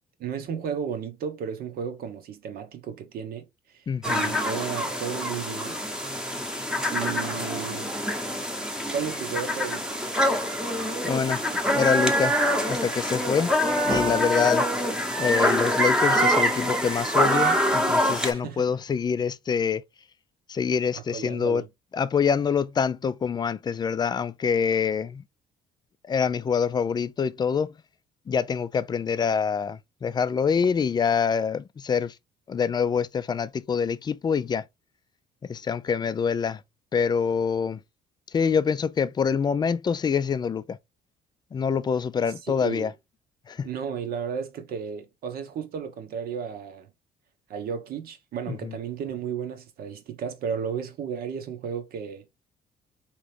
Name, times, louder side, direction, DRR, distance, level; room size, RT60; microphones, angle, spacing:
voice 1, 0.2-3.5 3.7-5.8 6.9-7.9 8.9-9.8 18.3-18.6 21.1-21.7 42.6-42.9 43.6-46.9 47.5-52.3, right 7 dB, 65° right, 1.0 m, -33 dB
voice 2, 3.9-4.4 11.0-11.5 11.7-12.4 12.7-13.5 13.8-14.6 15.2-19.8 20.5-21.6 21.9-25.2 26.0-27.7 28.3-32.2 32.5-34.6 35.4-36.6 36.9-37.8 38.3-40.8 41.5-42.9 43.5-43.7 48.5-48.8, left 6 dB, 25° left, 0.3 m, -25 dB
sound 1, 4.0-18.3, equal, 5° right, 0.9 m, -25 dB
3.7 x 3.0 x 3.3 m
cardioid pair, 110°, 17 cm